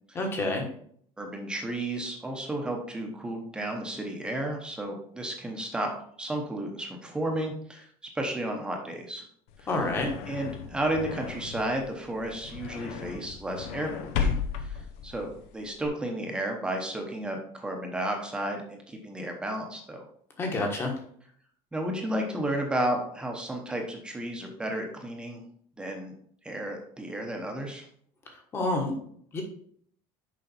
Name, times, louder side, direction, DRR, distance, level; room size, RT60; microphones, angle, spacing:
voice 1, 0.1-0.7 9.7-10.1 20.4-20.9 28.5-28.9 29.3-29.4, left 2 dB, 20° left, 3 dB, 1.3 m, -28 dB
voice 2, 1.2-5.9 6.2-7.9 8.1-9.3 9.6-9.8 10.3-14.3 14.6-20.1 21.7-25.4 25.8-26.1 26.4-27.9, right 1 dB, 10° right, 2 dB, 0.9 m, -33 dB
sound 1, 9.5-15.9, left 6 dB, 80° left, 0.8 m, -35 dB
6.6 x 5.0 x 4.2 m, 0.62 s
cardioid pair, 180°, 11 cm